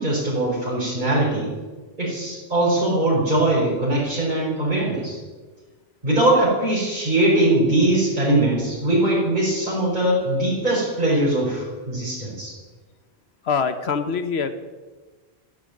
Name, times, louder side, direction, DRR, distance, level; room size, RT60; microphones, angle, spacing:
voice 1, 0.0-1.5 2.0-5.2 6.0-12.5, right 1 dB, 45° right, -8 dB, 4.9 m, -21 dB
voice 2, 13.4-14.5, left 5 dB, 85° left, 10 dB, 1.3 m, -24 dB
13.5 x 10.5 x 9.6 m, 1.3 s
omnidirectional pair, 1.1 m